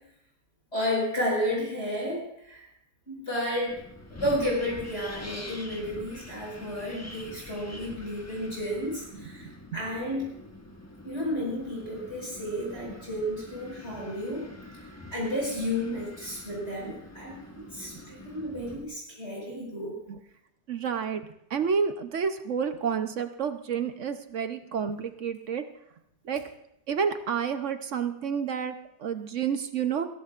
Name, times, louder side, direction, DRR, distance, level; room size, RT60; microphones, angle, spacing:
voice 1, 0.7-2.7 3.1-3.8 4.2-10.3 11.0-14.4 15.1-17.3 17.7-19.9, left 1 dB, 40° left, -4 dB, 5.6 m, -32 dB
Wind, 3.7-18.8, left 1 dB, 10° left, 0.9 m, -45 dB
voice 2, 9.4-9.8 12.9-13.0 20.1-20.2 20.7-21.2 21.5-25.6 26.2-26.4 26.9-30.1, right 6 dB, 55° right, 8 dB, 0.9 m, -30 dB
21.5 x 16.0 x 2.4 m, 0.77 s
omnidirectional pair, 1.8 m